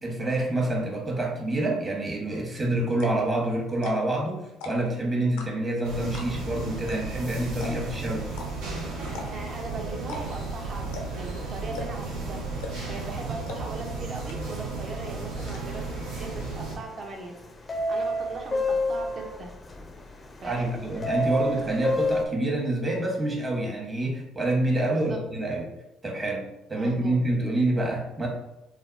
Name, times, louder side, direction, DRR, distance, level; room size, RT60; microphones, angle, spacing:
voice 1, 0.0-8.3 20.4-25.7 26.0-28.3, right 1 dB, 30° right, -2 dB, 0.9 m, -27 dB
sound 1, 2.4-2.5 2.9-3.2 3.7-4.2 4.5-4.9 5.4-5.8 6.1-6.5 6.9-7.0 7.2-7.3 7.6-7.9 8.3-8.5 9.1-9.5 10.0-10.5 10.9-11.2 11.7-12.1 12.6-12.9 13.5-13.6 13.9-14.0 14.3-14.7 15.0-15.6, left 3 dB, 90° left, 0.4 m, -38 dB
sound 2, 5.8-16.8, right 3 dB, 90° right, 0.6 m, -34 dB
voice 2, 9.3-12.4 12.9-17.4 17.9-19.5 20.4-20.7 24.9-25.2 26.7-27.2, right 3 dB, 45° right, 2 dB, 0.6 m, -39 dB
sound 3, 15.6-15.9 16.2-17.0 17.7-22.3, left 1 dB, 30° left, 0.4 m, -28 dB
3.4 x 2.1 x 2.4 m, 0.94 s
supercardioid pair, 70°, 0 cm